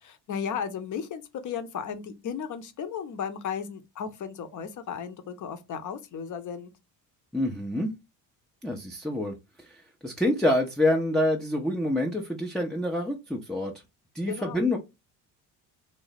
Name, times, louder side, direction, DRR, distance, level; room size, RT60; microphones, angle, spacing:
voice 1, 0.0-6.7 14.3-14.6, left 7 dB, 40° left, 0.7 m, -35 dB
voice 2, 7.3-7.9 8.6-13.7 14.1-14.8, left 1 dB, ahead, 0.4 m, -27 dB
3.2 x 2.0 x 3.9 m
hypercardioid pair, 60°, 49 cm